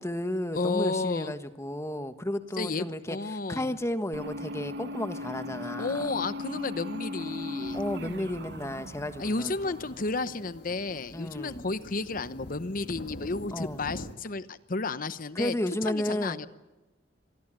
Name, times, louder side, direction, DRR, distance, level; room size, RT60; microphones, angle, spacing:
voice 1, 0.0-6.3 7.7-9.8 11.1-11.7 13.5-13.8 15.3-16.4, left 1 dB, 15° left, 9 dB, 1.4 m, -33 dB
voice 2, 0.5-1.3 2.6-3.8 5.8-7.8 9.2-15.5 15.8-16.5, left 3 dB, 50° left, 14 dB, 0.9 m, -32 dB
sound 1, 4.1-10.5, left 2 dB, 60° right, 1.5 m, -38 dB
sound 2, 7.6-14.2, left 1 dB, 65° left, 1.9 m, -45 dB
26.0 x 20.5 x 9.0 m, 1.1 s
head